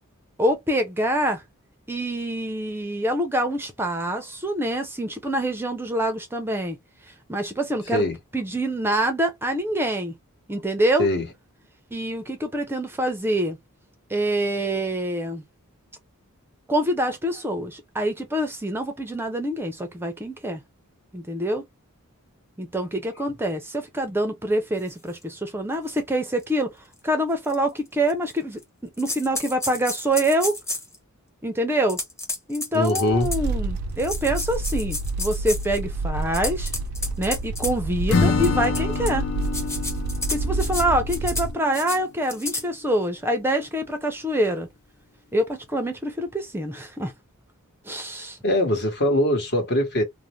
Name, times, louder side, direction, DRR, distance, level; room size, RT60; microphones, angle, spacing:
voice 1, 0.4-1.4 1.9-6.8 7.1-8.0 8.3-10.2 10.5-11.1 11.9-13.6 14.1-15.4 16.7-20.6 21.1-21.6 22.6-26.7 27.0-28.6 29.0-30.6 31.4-32.0 32.5-36.7 37.2-39.3 40.3-44.7 45.3-47.1 47.9-48.4, right 1 dB, 10° right, 0.5 m, -25 dB
sound 1, 25.1-25.2 25.9-26.0 26.4-26.5 27.4-27.5 28.1-28.6 29.0-30.9 31.9-33.5 34.0-35.8 36.2-37.7 38.4-39.1 39.4-40.8 41.1-41.5 41.7-42.0 42.3-42.6, left 2 dB, 15° left, 0.8 m, -31 dB
voice 2, 32.7-33.3 48.4-50.0, left 1 dB, 50° left, 1.1 m, -22 dB
sound 2, 33.1-41.5, right 2 dB, 80° right, 0.4 m, -29 dB
Acoustic guitar / Strum, 38.1-42.0, left 4 dB, 65° left, 0.7 m, -27 dB
2.5 x 2.0 x 3.0 m
head